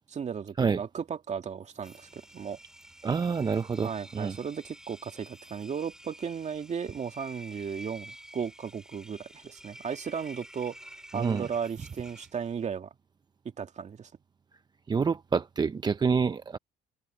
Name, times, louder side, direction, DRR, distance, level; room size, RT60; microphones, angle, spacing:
voice 1, 0.1-2.6 3.8-10.8 11.1-12.9 13.6-14.1, right 7 dB, 40° right, 2.3 m, -35 dB
Engine, 1.8-12.7, equal, 5° right, 5.3 m, -50 dB
voice 2, 3.0-4.4 11.1-11.4 14.9-16.6, right 5 dB, 25° right, 0.5 m, -27 dB
supercardioid pair, 85°, 18 cm